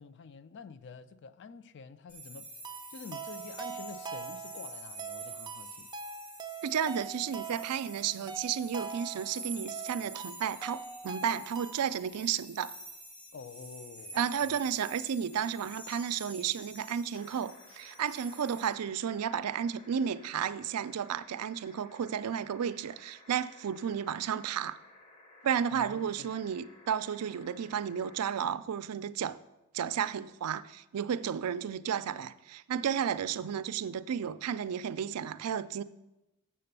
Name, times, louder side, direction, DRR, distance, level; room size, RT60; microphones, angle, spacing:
voice 1, 0.0-2.5 2.9-5.9 13.3-14.6 25.7-26.3, left 5 dB, 50° left, 0.4 m, -48 dB
sound 1, 2.1-18.7, right 1 dB, 90° left, 3.4 m, -47 dB
sound 2, 2.6-12.0, right 6 dB, 20° right, 0.4 m, -43 dB
voice 2, 6.6-12.7 14.1-24.8 25.4-29.4 29.7-35.8, right 8 dB, 90° right, 0.4 m, -33 dB
sound 3, 17.1-28.4 29.8-29.9, left 2 dB, 30° left, 0.7 m, -57 dB
7.6 x 6.8 x 6.7 m
head